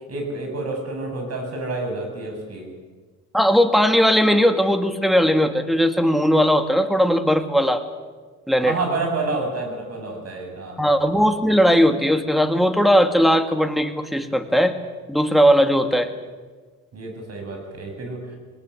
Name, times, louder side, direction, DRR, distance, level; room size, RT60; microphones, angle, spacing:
voice 1, 0.1-2.7 8.6-10.8 16.9-18.4, right 3 dB, 55° right, 3 dB, 7.9 m, -29 dB
voice 2, 3.3-7.8 8.5-8.7 10.8-14.8 15.1-16.1, equal, ahead, 8 dB, 2.3 m, -18 dB
20.5 x 19.5 x 8.7 m, 1.4 s
cardioid pair, 75°, 29 cm